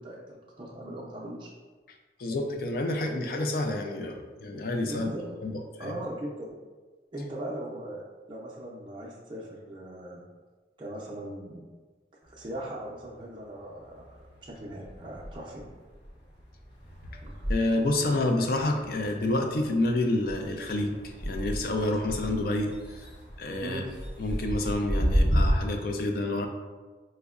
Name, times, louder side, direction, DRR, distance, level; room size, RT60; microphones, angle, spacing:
voice 1, 0.0-1.5 4.8-5.4 5.8-6.5 7.1-8.0 8.3-10.2 10.8-11.7 12.2-15.7 17.2-17.5 23.6-23.9, right 1 dB, 25° right, -5 dB, 0.4 m, -39 dB
voice 2, 2.2-5.1 5.4-5.5 5.8-5.9 17.5-23.0 23.4-23.8 24.2-26.5, left 2 dB, 50° left, 3 dB, 0.4 m, -28 dB
sound 1, 12.3-13.5 13.8-25.5, equal, 25° left, 0.7 m, -33 dB
5.1 x 2.1 x 2.3 m, 1.4 s
head